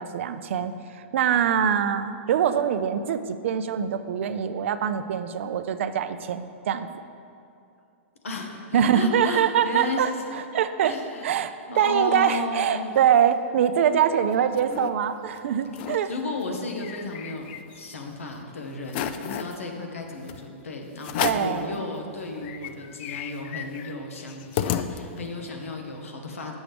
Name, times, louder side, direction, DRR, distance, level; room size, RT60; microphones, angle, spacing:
voice 1, 0.0-7.0 8.7-10.9 11.2-16.1 21.2-21.8, right 8 dB, 70° right, 11 dB, 0.4 m, -24 dB
voice 2, 8.2-10.0 10.8-11.2 11.7-13.0 16.1-26.5, left 3 dB, 90° left, 2 dB, 1.0 m, -34 dB
sound 1, 14.1-14.9 15.3-15.4 15.7-16.0 16.4-18.0 18.4-18.5 18.9-19.6 20.3-20.4 21.0-21.6 22.1-22.2 22.4-25.4, left 10 dB, 50° left, 0.4 m, -32 dB
7.5 x 6.1 x 3.5 m, 2.5 s
hypercardioid pair, 125°, 7 cm